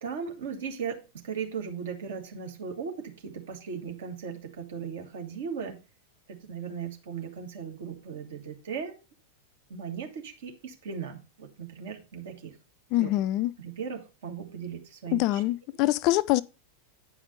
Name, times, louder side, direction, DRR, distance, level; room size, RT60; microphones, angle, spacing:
voice 1, 0.0-5.8 6.4-8.9 9.7-12.5 12.9-13.1 13.6-15.4, right 6 dB, 60° right, 1.7 m, -37 dB
voice 2, 12.9-13.5 15.1-16.4, left 16 dB, 40° left, 0.3 m, -24 dB
9.3 x 5.1 x 4.0 m
figure-of-eight pair, 90°, 0 cm